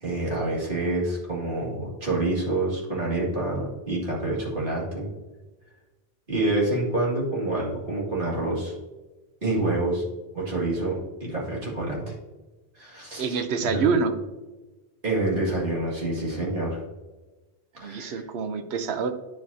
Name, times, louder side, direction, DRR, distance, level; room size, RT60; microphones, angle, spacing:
voice 1, 0.0-5.1 6.3-8.7 9.4-10.0 10.3-12.1 12.7-13.8 15.0-16.8 17.8-18.2, right 2 dB, 55° right, -5 dB, 2.2 m, -27 dB
voice 2, 13.2-14.1 17.8-19.1, right 5 dB, 75° right, 9 dB, 0.9 m, -26 dB
9.4 x 5.1 x 2.7 m, 1.2 s
omnidirectional pair, 1.1 m